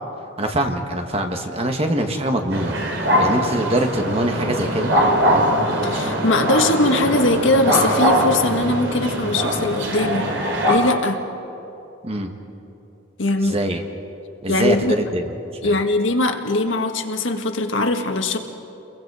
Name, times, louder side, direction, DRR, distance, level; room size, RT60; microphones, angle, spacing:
voice 1, 0.4-2.8 3.2-5.0 12.0-12.3 13.4-13.8 14.4-15.3 15.6-15.7, right 1 dB, 30° right, 4 dB, 1.6 m, -23 dB
sound 1, 2.5-10.7, equal, 70° right, 3.6 m, -21 dB
voice 2, 5.8-10.3 10.7-11.2 13.2-13.6 14.5-15.0 15.6-18.4, left 2 dB, 85° left, 5 dB, 1.6 m, -21 dB
30.0 x 22.0 x 4.9 m, 2.9 s
head